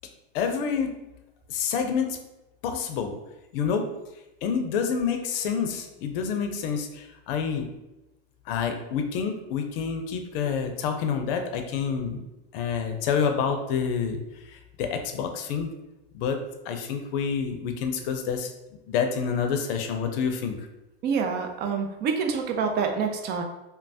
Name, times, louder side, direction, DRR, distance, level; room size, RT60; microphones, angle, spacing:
voice 1, 0.3-0.9 1.5-2.2 2.6-3.1 3.5-3.9 4.4-7.7 8.5-12.2 12.5-14.2 14.5-15.7 16.1-18.5 18.9-20.5, left 6 dB, 65° left, 6 dB, 0.5 m, -28 dB
voice 2, 21.0-23.4, right 5 dB, 35° right, 4 dB, 0.4 m, -27 dB
3.1 x 2.0 x 2.6 m, 0.95 s
supercardioid pair, 115°, 30 cm